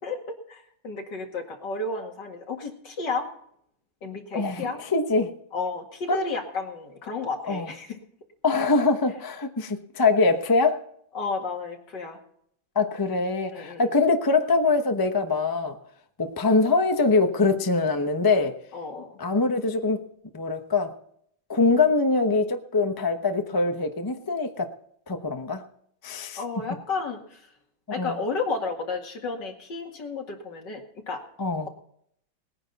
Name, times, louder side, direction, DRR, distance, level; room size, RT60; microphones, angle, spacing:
voice 1, 0.0-3.3 4.0-4.8 5.5-8.0 11.1-12.2 13.5-13.9 18.7-19.2 26.4-27.5 27.9-31.2, left 4 dB, 65° left, 2 dB, 2.7 m, -32 dB
voice 2, 4.3-5.3 6.1-6.2 7.5-7.7 8.4-10.8 12.7-15.8 16.2-18.6 19.2-20.1 20.3-20.9 21.5-24.7 25.1-25.6 26.0-26.4 28.0-28.2 31.4-31.7, left 3 dB, 20° left, 6 dB, 0.6 m, -23 dB
20.0 x 9.9 x 4.1 m, 0.68 s
omnidirectional pair, 2.1 m